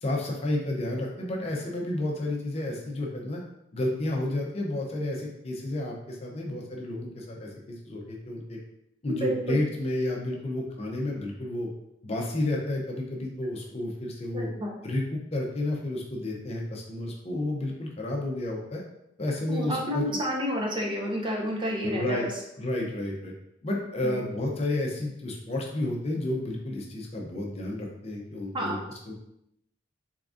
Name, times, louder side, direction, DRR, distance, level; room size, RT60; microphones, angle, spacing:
voice 1, 0.0-3.4 3.7-8.6 9.0-11.7 12.0-14.5 14.8-18.8 19.2-20.0 21.8-22.3 22.6-23.3 23.6-28.8 29.1-29.2, left 1 dB, 30° left, 0 dB, 0.5 m, -31 dB
voice 2, 9.1-9.6 14.3-14.7 19.5-22.3 24.0-24.2 28.5-28.8, equal, 25° right, -1 dB, 0.5 m, -30 dB
3.6 x 3.4 x 2.5 m, 0.81 s
head